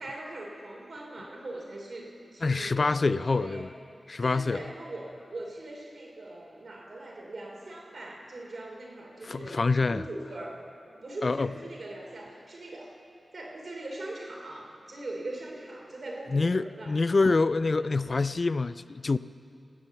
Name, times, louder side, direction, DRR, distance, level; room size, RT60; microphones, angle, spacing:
voice 1, 0.0-3.7 4.2-9.6 9.9-10.6 10.9-12.9 13.3-17.4 17.8-18.2, right 2 dB, 60° right, 0 dB, 2.8 m, -41 dB
voice 2, 2.4-3.7 4.1-4.6 9.2-10.0 11.2-11.5 16.3-19.2, left 3 dB, 50° left, 15 dB, 0.3 m, -26 dB
18.5 x 6.9 x 8.1 m, 2.5 s
cardioid pair, 60°, 0 cm